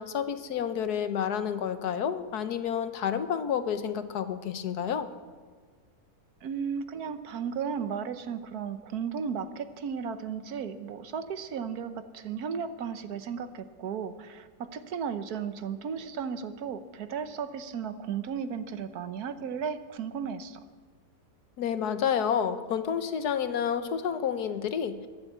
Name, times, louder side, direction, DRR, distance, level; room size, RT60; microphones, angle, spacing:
voice 1, 0.0-5.1 21.6-25.0, left 8 dB, 75° left, 10 dB, 1.5 m, -29 dB
voice 2, 6.4-20.6, right 7 dB, 70° right, 11 dB, 1.3 m, -35 dB
21.5 x 8.2 x 8.1 m, 1.5 s
omnidirectional pair, 1.7 m